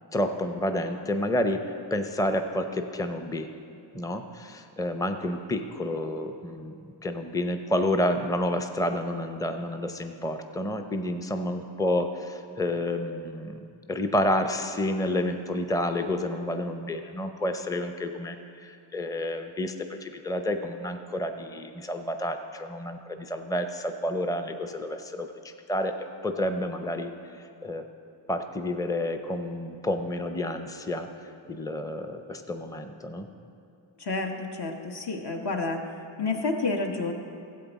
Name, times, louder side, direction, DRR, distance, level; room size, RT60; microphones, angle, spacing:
voice 1, 0.1-3.5 3.9-6.7 7.0-13.6 13.9-19.7 20.0-25.3 25.7-26.0 26.2-27.1 27.4-27.8 28.3-31.1 31.5-33.3, left 1 dB, 10° left, 7 dB, 0.6 m, -29 dB
voice 2, 34.0-35.8 36.2-37.1, left 3 dB, 55° left, 3 dB, 1.1 m, -29 dB
13.5 x 8.0 x 4.1 m, 2.5 s
cardioid pair, 60°, 48 cm